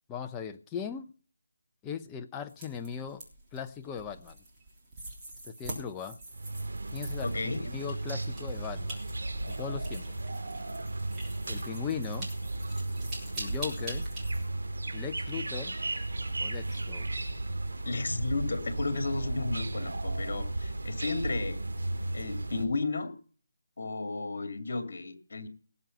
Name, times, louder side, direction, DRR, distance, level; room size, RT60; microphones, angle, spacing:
voice 1, 0.1-1.1 1.8-3.2 3.5-4.4 5.4-6.2 6.9-9.0 9.5-10.1 11.5-12.3 13.4-14.1 14.9-15.8 16.4-17.1, left 7 dB, 10° left, 5 dB, 0.7 m, -38 dB
sound 1, 2.5-14.5, right 1 dB, 15° right, 3.4 m, -45 dB
sound 2, 6.3-22.6, right 2 dB, 75° right, 3.2 m, -35 dB
voice 2, 7.2-7.7 17.8-21.6 22.1-23.1 23.8-25.5, left 3 dB, 55° left, 8 dB, 2.7 m, -33 dB
18.5 x 7.6 x 5.6 m, 0.41 s
figure-of-eight pair, 165°, 0 cm